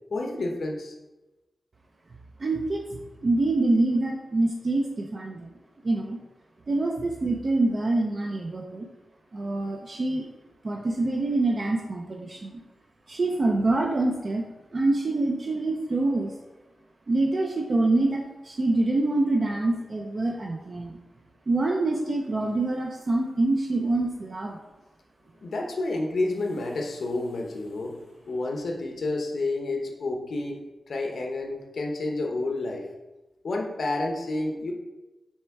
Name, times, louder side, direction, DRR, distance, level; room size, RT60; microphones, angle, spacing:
voice 1, 0.1-0.9 25.4-28.0 28.3-30.6 30.9-32.9 33.4-34.7, left 2 dB, 65° left, 2 dB, 0.9 m, -29 dB
voice 2, 2.4-5.5 5.8-6.2 6.7-8.9 9.3-10.3 10.6-12.6 13.1-14.5 14.7-16.3 17.1-21.0 21.5-24.6, right 2 dB, 40° right, 0 dB, 0.6 m, -25 dB
7.2 x 3.3 x 4.6 m, 1.1 s
wide cardioid pair, 155°, 0 cm